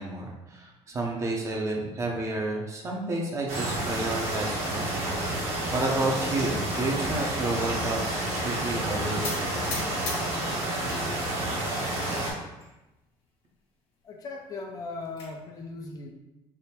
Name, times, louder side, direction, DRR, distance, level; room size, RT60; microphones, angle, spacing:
voice 1, 0.0-5.1 5.7-9.5, right 2 dB, 30° right, -1 dB, 0.7 m, -31 dB
sound 1, 3.5-12.3, right 1 dB, 75° right, 1.4 m, -30 dB
sound 2, 9.2-11.0 11.4-12.0 12.6-12.7 13.0-13.1 13.4-13.5 14.7-15.3, left 3 dB, 60° left, 1.3 m, -38 dB
voice 2, 14.0-16.1, left 3 dB, 35° left, 2 dB, 0.4 m, -38 dB
3.5 x 2.7 x 4.3 m, 1.0 s
cardioid pair, 150°, 11 cm